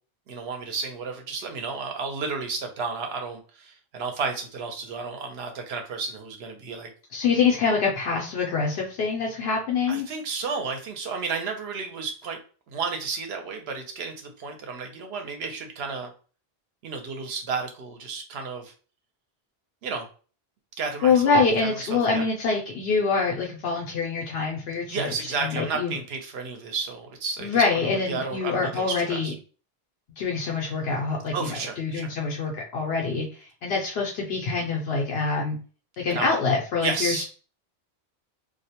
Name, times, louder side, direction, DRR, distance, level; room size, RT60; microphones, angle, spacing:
voice 1, 0.3-6.9 9.9-12.4 12.7-16.1 16.8-18.7 19.8-20.1 20.8-22.2 24.9-29.3 31.3-32.1 36.1-36.3 36.8-37.2, right 4 dB, 85° right, 4 dB, 0.9 m, -32 dB
voice 2, 7.1-10.1 21.0-25.9 27.4-29.3 30.2-35.6 36.0-37.2, left 4 dB, 80° left, -1 dB, 0.8 m, -25 dB
2.4 x 2.1 x 2.8 m, 0.38 s
omnidirectional pair, 1.0 m